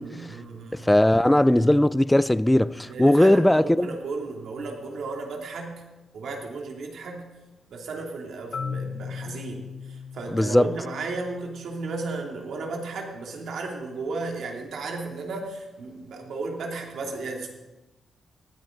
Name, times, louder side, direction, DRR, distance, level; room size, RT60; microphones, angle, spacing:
voice 1, 0.0-0.8 2.9-5.8 6.1-7.3 7.7-17.5, right 3 dB, 70° right, 2.8 m, -34 dB
voice 2, 0.8-3.9 10.3-10.7, left 1 dB, 5° left, 0.4 m, -19 dB
Marimba xylophone, 8.5-12.4, left 6 dB, 50° left, 0.6 m, -38 dB
18.5 x 14.5 x 3.9 m
wide cardioid pair, 145°, 0 cm